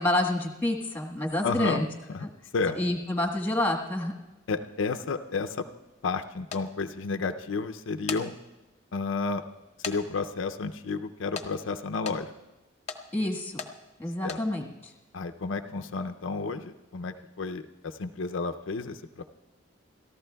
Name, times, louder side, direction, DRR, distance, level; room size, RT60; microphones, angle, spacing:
voice 1, 0.0-1.8 2.7-4.1 13.1-13.6 14.0-14.9, left 1 dB, 10° left, 1 dB, 1.4 m, -28 dB
voice 2, 1.4-2.3 2.5-2.8 4.5-5.6 6.0-8.3 8.9-9.4 9.8-12.3 14.2-14.4 15.1-19.2, left 4 dB, 75° left, 8 dB, 0.5 m, -31 dB
sound 1, 6.5-6.6 7.8-8.2 8.8-8.9 9.8-10.0 10.3-10.4 11.4-11.5 12.0-12.2 12.9-13.0 13.6-13.7 14.2-14.4, left 6 dB, 35° left, 0.7 m, -35 dB
29.0 x 14.0 x 2.3 m, 1.0 s
head